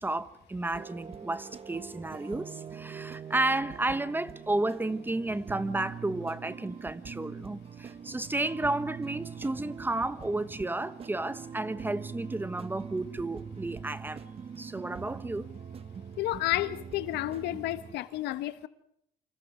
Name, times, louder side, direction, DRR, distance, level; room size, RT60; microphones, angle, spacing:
voice 1, 0.0-14.3 14.6-15.5, right 2 dB, 10° right, 1.0 m, -32 dB
sound 1, 0.7-18.0, right 7 dB, 35° right, 0.8 m, -43 dB
voice 2, 16.2-18.7, left 15 dB, 85° left, 1.1 m, -31 dB
28.0 x 26.5 x 5.0 m
cardioid pair, 110°, 17 cm